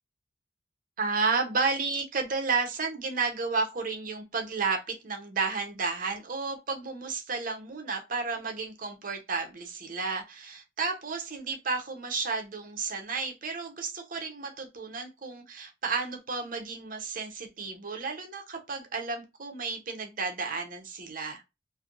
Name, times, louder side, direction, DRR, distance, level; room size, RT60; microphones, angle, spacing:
voice 1, 1.0-21.4, right 4 dB, 50° right, 0.8 m, -32 dB
3.4 x 2.6 x 2.4 m
head